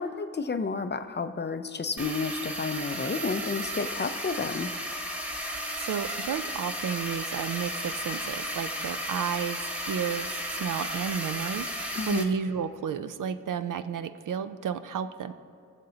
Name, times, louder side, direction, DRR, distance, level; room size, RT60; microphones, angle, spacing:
voice 1, 0.0-4.7 11.9-12.3, left 4 dB, 30° left, 10 dB, 0.5 m, -31 dB
sound 1, 2.0-12.2, equal, 5° right, 1.0 m, -34 dB
voice 2, 5.8-15.3, right 7 dB, 60° right, 11 dB, 0.5 m, -32 dB
19.0 x 6.6 x 2.8 m, 2.4 s
cardioid pair, 60°, 36 cm